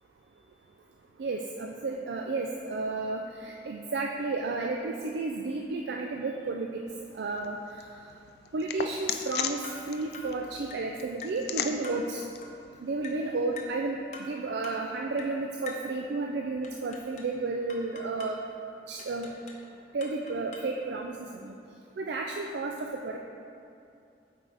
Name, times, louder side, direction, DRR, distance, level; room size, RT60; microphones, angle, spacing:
voice 1, 1.2-6.8 7.1-7.8 8.5-12.2 12.8-18.4 18.9-19.3 19.9-21.5 22.0-23.2, right 3 dB, 75° right, 2 dB, 0.4 m, -32 dB
sound 1, 6.9-13.7, left 7 dB, 65° left, 0.4 m, -39 dB
sound 2, 9.6-9.9 10.1-10.4 10.7-10.9 11.2-11.5 11.8-12.1 12.4-12.6 13.0-13.3 13.6-13.8 14.1-14.4 14.6-14.9 15.2-15.4 15.7-15.9 16.6-17.4 17.7-18.4 19.0-19.7 20.0-20.8, left 3 dB, 40° left, 0.8 m, -45 dB
8.8 x 4.8 x 3.9 m, 2.6 s
head